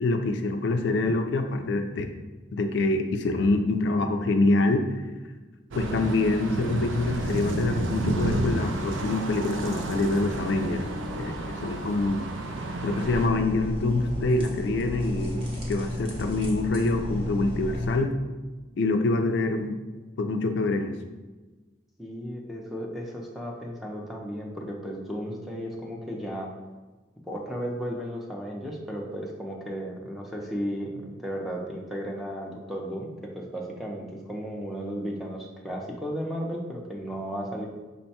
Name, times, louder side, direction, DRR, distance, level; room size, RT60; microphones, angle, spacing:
voice 1, 0.0-2.1 2.5-5.0 5.7-10.8 11.1-12.3 12.8-18.1 18.8-19.7 20.2-20.9, left 2 dB, 65° left, 6 dB, 0.3 m, -25 dB
sound 1, 5.7-13.3, right 1 dB, 85° right, 0.5 m, -31 dB
sound 2, 13.0-18.0, left 1 dB, 30° right, 0.9 m, -32 dB
voice 2, 22.0-26.5 27.3-37.7, equal, ahead, -1 dB, 0.5 m, -34 dB
5.2 x 2.2 x 4.1 m, 1.2 s
head